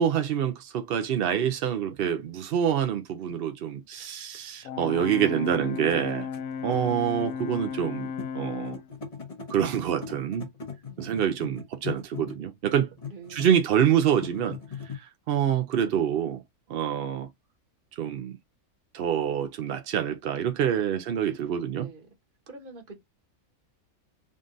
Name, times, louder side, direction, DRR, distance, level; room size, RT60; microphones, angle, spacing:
voice 1, 0.0-6.3 6.6-8.8 9.5-10.5 11.0-12.9 13.3-14.6 14.8-16.4 16.7-17.3 18.0-18.4 18.9-21.9, right 9 dB, 70° right, 0.5 m, -26 dB
sound 1, 2.2-2.3 3.3-3.4 4.7-4.8 5.0-7.9 8.2-8.3 8.6-9.7 10.0-12.5 13.0-13.7 14.1-15.0, left 6 dB, 30° left, 0.9 m, -40 dB
Brass instrument, 4.6-8.9, left 7 dB, 75° left, 1.0 m, -35 dB
voice 2, 10.9-11.3 13.1-13.5 20.8-21.4 21.8-22.1 22.5-23.0, right 3 dB, 40° right, 1.3 m, -48 dB
3.8 x 2.4 x 3.7 m
omnidirectional pair, 1.5 m